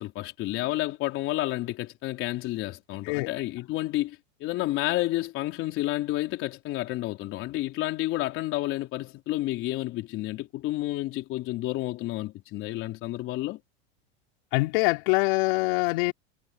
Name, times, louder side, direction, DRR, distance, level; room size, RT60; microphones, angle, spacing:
voice 1, 0.0-13.6, left 17 dB, 40° left, 3.9 m, -30 dB
voice 2, 14.5-16.1, left 26 dB, 60° left, 4.6 m, -24 dB
supercardioid pair, 140°, 32 cm